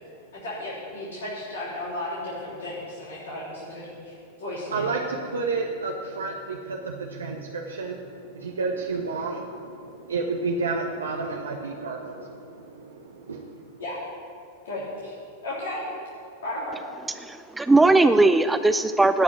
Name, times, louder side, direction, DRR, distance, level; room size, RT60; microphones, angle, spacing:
voice 1, 0.4-4.1 4.4-4.9 13.8-14.0 14.6-15.1 15.4-15.8 16.4-16.8, left 1 dB, 65° left, -8 dB, 3.4 m, -34 dB
voice 2, 4.7-13.8, right 3 dB, 70° right, 1 dB, 1.1 m, -31 dB
voice 3, 17.2-19.2, right 2 dB, 10° right, 10 dB, 0.4 m, -19 dB
18.0 x 6.2 x 8.9 m, 2.7 s
figure-of-eight pair, 90°, 0 cm